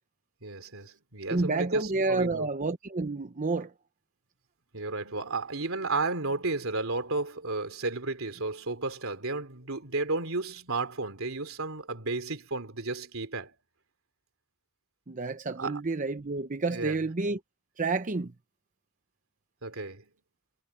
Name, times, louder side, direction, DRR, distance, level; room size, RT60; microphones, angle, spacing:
voice 1, 0.4-2.5 4.7-13.5 15.6-15.8 16.7-17.0 19.6-20.1, right 3 dB, 80° right, 3.1 m, -33 dB
voice 2, 1.3-3.7 15.1-17.4 17.8-18.3, right 3 dB, 40° right, 0.8 m, -29 dB
head